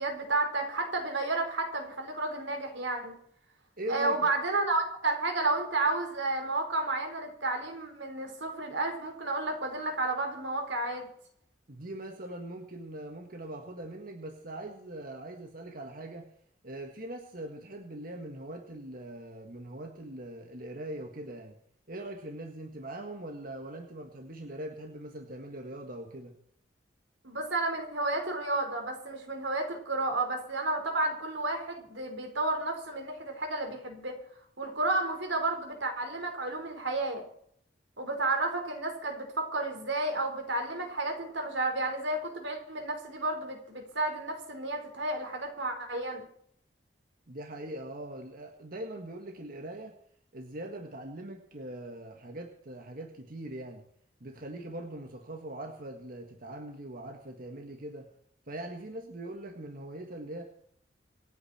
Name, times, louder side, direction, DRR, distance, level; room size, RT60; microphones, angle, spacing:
voice 1, 0.0-3.1 3.9-11.1 27.2-34.2 34.6-37.2 38.0-46.2, right 2 dB, 85° right, 4 dB, 4.4 m, -31 dB
voice 2, 3.8-4.2 11.7-16.3 16.6-21.6 21.9-26.3 47.3-50.0 50.3-53.8 54.2-58.1 58.5-60.4, right 1 dB, 50° right, 4 dB, 1.7 m, -41 dB
26.5 x 9.5 x 4.4 m, 0.65 s
head